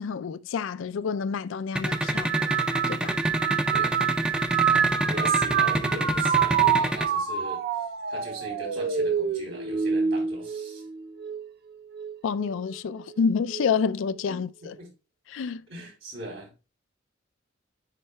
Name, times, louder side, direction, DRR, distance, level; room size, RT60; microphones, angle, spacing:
voice 1, 0.0-2.3 2.9-3.2 12.2-14.5 15.3-15.6, left 6 dB, 80° left, 0.4 m, -28 dB
sound 1, 1.8-7.1, right 1 dB, 5° right, 0.4 m, -26 dB
sound 2, 1.9-11.5 11.9-12.5 13.5-13.8, right 7 dB, 55° right, 0.5 m, -27 dB
voice 2, 4.7-10.8 14.8-14.9 15.7-16.5, right 2 dB, 85° right, 3.5 m, -39 dB
9.6 x 4.6 x 2.2 m
head